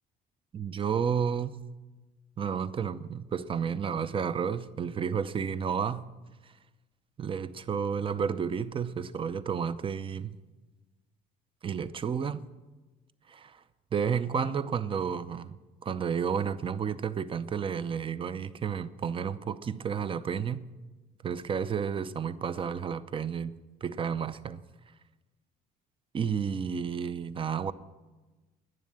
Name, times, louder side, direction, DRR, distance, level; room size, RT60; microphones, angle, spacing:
voice 1, 0.5-1.6 2.4-6.1 7.2-10.3 11.6-12.5 13.3-13.6 13.9-15.6 15.8-20.7 21.2-24.6 26.1-27.7, right 7 dB, 30° right, 0.6 m, -31 dB
11.0 x 10.0 x 8.8 m
cardioid pair, 110°, 17 cm